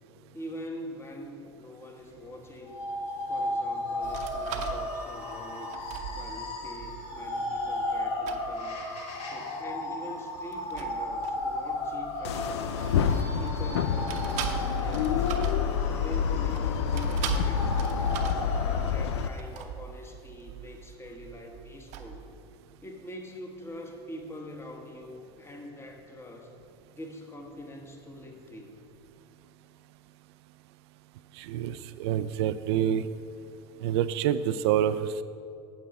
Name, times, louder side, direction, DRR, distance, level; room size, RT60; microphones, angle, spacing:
voice 1, 0.3-2.9 3.3-5.8 6.1-8.8 9.3-12.9 13.4-17.9 18.9-22.3 22.8-26.5 26.9-28.8, left 1 dB, 20° left, 3 dB, 1.2 m, -43 dB
sound 1, 2.7-18.8, left 1 dB, 50° left, 1.5 m, -35 dB
sound 2, 4.0-8.0 8.3-8.5 10.4-13.7 14.1-22.3, right 8 dB, 60° right, 0.8 m, -40 dB
sound 3, 12.2-19.3, left 7 dB, 90° left, 0.4 m, -28 dB
voice 2, 31.4-33.1 33.8-35.2, right 10 dB, 75° right, 13 dB, 0.4 m, -27 dB
8.5 x 7.6 x 4.2 m, 2.6 s
hypercardioid pair, 95°, 14 cm